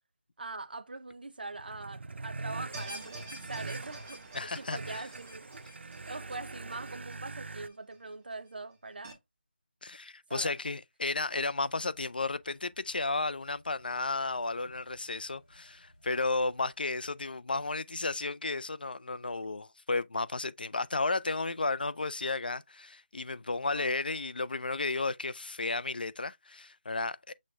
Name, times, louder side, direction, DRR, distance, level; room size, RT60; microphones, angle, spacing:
voice 1, 0.4-5.7 6.0-9.2 10.3-10.5 23.7-24.0, right 3 dB, 60° right, 0.7 m, -43 dB
sound 1, 1.5-7.7, right 3 dB, 85° right, 0.4 m, -43 dB
sound 2, 2.7-8.0 8.3-8.4 9.0-9.1, right 1 dB, 10° right, 0.5 m, -47 dB
voice 2, 4.3-5.0 9.8-27.3, left 3 dB, 55° left, 0.4 m, -33 dB
sound 3, 11.2-17.3, equal, 25° left, 1.6 m, -63 dB
6.3 x 2.1 x 3.5 m
figure-of-eight pair, 180°, 6 cm